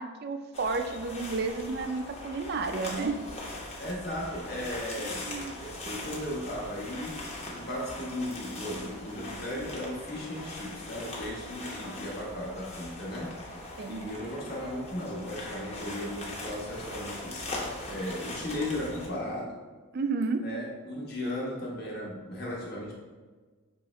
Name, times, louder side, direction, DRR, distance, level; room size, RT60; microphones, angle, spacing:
voice 1, 0.0-3.2 5.0-5.6 13.8-14.1 19.9-20.4, right 4 dB, 50° right, 7 dB, 0.3 m, -32 dB
sound 1, 0.5-19.1, left 1 dB, 30° left, 0.8 m, -40 dB
voice 2, 3.8-7.2 7.5-13.3 13.9-17.4 17.9-19.5 20.4-22.9, left 1 dB, 45° left, -4 dB, 1.1 m, -36 dB
5.5 x 3.1 x 3.1 m, 1.4 s
head